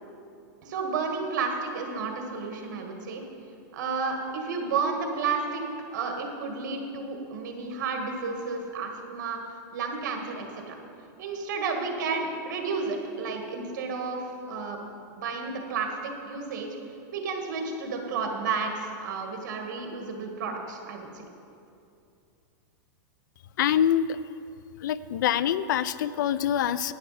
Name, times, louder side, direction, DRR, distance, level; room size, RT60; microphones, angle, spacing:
voice 1, 0.6-3.2 3.7-5.6 5.9-10.8 11.2-14.8 15.1-16.7 17.1-21.2, right 4 dB, 65° right, 2 dB, 1.8 m, -32 dB
voice 2, 23.6-24.2 24.8-26.9, left 10 dB, 75° left, 17 dB, 0.4 m, -25 dB
10.5 x 10.0 x 4.2 m, 2.6 s
supercardioid pair, 155°, 10 cm